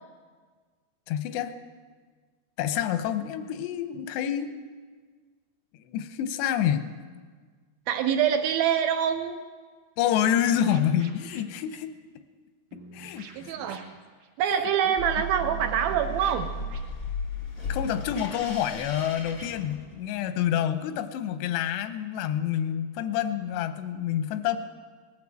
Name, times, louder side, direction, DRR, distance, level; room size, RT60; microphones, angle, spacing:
voice 1, 1.1-1.5 2.6-4.5 5.7-6.9 10.0-12.0 12.9-13.5 17.7-24.6, left 10 dB, 90° left, 10 dB, 3.0 m, -28 dB
voice 2, 7.9-9.4 13.3-13.8 14.4-16.5, right 8 dB, 80° right, 7 dB, 2.2 m, -25 dB
sound 1, 10.0-11.5 12.7-14.3 15.4-16.8, right 5 dB, 60° right, 2.6 m, -46 dB
sound 2, 15.0-20.3, left 1 dB, 30° left, 1.0 m, -35 dB
19.5 x 9.7 x 7.5 m, 1.5 s
omnidirectional pair, 4.8 m